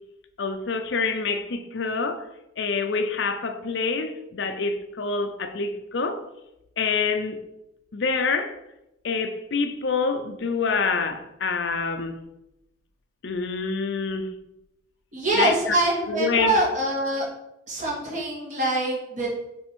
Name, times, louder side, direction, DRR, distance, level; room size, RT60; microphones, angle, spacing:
voice 1, 0.4-2.3 2.6-6.2 6.8-7.4 7.9-8.6 9.0-12.2 13.2-14.4 15.3-15.7 16.1-16.6, left 4 dB, 60° left, 0.6 m, -26 dB
voice 2, 15.1-17.3 17.7-19.3, right 1 dB, 40° right, 1.9 m, -24 dB
7.5 x 3.5 x 4.4 m
head